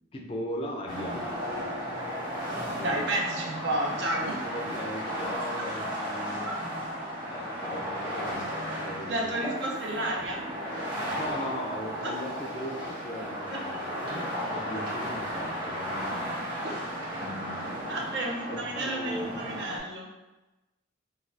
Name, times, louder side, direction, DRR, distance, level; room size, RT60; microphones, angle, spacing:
voice 1, 0.1-1.3 2.8-2.9 4.4-6.5 7.2-9.4 11.2-16.3 17.2-17.7 18.5-19.4, equal, 30° left, 0 dB, 0.3 m, -38 dB
sound 1, 0.9-19.8, equal, 25° right, 0.8 m, -34 dB
voice 2, 2.8-4.4 6.5-6.6 9.0-10.4 12.0-12.1 13.5-13.6 16.6-16.8 17.9-20.1, right 1 dB, 65° right, 0 dB, 0.5 m, -31 dB
2.5 x 2.3 x 3.3 m, 1.1 s
head